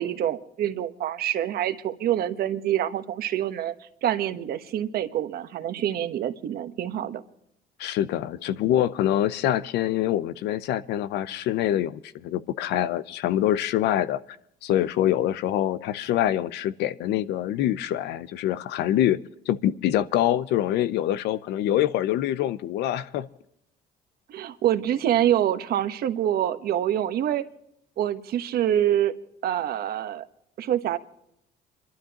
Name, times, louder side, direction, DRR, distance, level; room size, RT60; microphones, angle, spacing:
voice 1, 0.0-3.7 4.0-7.2 24.3-27.5 28.0-29.1 29.4-30.2 30.6-31.0, right 11 dB, 65° right, 9 dB, 1.2 m, -26 dB
voice 2, 7.8-14.2 14.6-19.2 19.5-23.3, left 12 dB, 80° left, 16 dB, 0.7 m, -25 dB
28.5 x 12.5 x 2.9 m, 0.76 s
cardioid pair, 110°, 17 cm